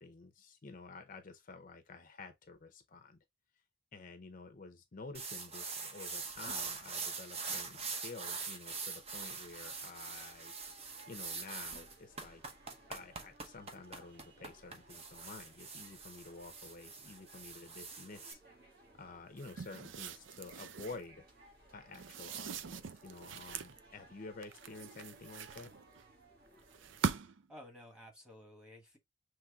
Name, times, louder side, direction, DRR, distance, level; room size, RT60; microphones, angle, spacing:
voice 1, 0.0-3.2 3.9-10.5 11.1-12.4 12.9-18.4 18.9-21.3 21.7-25.7, left 3 dB, 45° left, 0.6 m, -50 dB
sound 1, 5.1-18.3, right 4 dB, 35° right, 0.8 m, -43 dB
sound 2, 9.0-27.2, right 1 dB, 55° right, 1.5 m, -61 dB
sound 3, 19.4-21.1 21.9-23.8 24.4-26.0 26.7-27.5, right 6 dB, 80° right, 0.5 m, -42 dB
voice 2, 27.5-29.0, left 1 dB, 5° right, 1.5 m, -54 dB
5.9 x 3.2 x 2.3 m
head